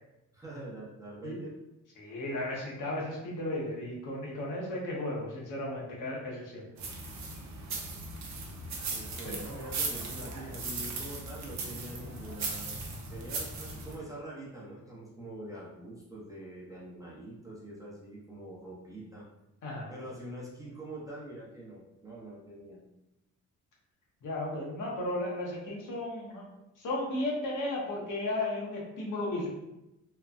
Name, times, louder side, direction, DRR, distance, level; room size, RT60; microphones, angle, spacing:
voice 1, 0.3-1.5 3.0-3.1 8.9-12.8 13.1-19.3 19.9-22.8, right 1 dB, 10° right, -6 dB, 0.7 m, -44 dB
voice 2, 2.0-6.7 9.2-9.3 19.6-19.9 24.2-26.5 26.8-29.5, left 1 dB, 70° left, -4 dB, 1.0 m, -34 dB
sound 1, 6.8-14.0, right 3 dB, 60° right, 0.7 m, -38 dB
3.2 x 2.1 x 2.4 m, 0.94 s
cardioid pair, 100°, 32 cm